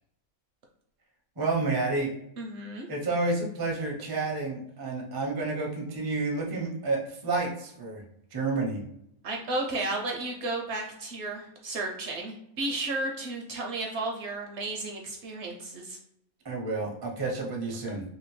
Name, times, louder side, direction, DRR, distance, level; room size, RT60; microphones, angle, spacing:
voice 1, 1.4-2.1 2.9-8.0 8.3-8.8 16.4-18.0, right 3 dB, 35° right, -1 dB, 0.4 m, -30 dB
voice 2, 2.4-2.9 9.2-16.0, right 2 dB, 65° right, 1 dB, 0.7 m, -33 dB
2.8 x 2.6 x 3.0 m, 0.76 s
omnidirectional pair, 1.5 m